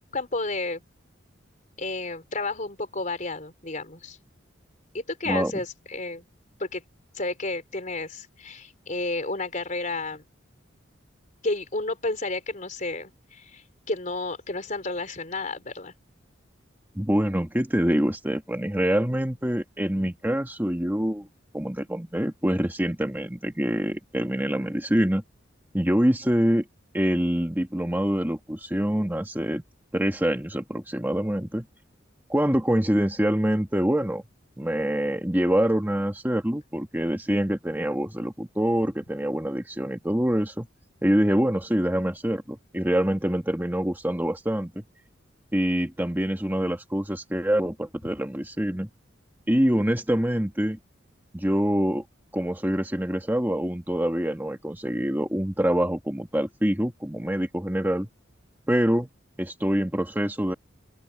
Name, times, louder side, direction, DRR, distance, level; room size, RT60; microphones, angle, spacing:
voice 1, 0.1-0.8 1.8-4.2 4.9-6.2 6.6-6.8 7.1-10.2 11.4-15.9 59.0-59.1, left 2 dB, 40° left, 3.8 m, -31 dB
voice 2, 16.9-21.3 21.5-25.2 25.7-26.6 26.9-29.6 29.9-31.6 32.3-34.2 34.6-40.7 41.0-44.8 45.5-48.9 49.5-50.8 51.3-52.0 52.3-58.1 58.7-59.1 59.4-60.5, equal, 10° right, 1.7 m, -25 dB
open air
head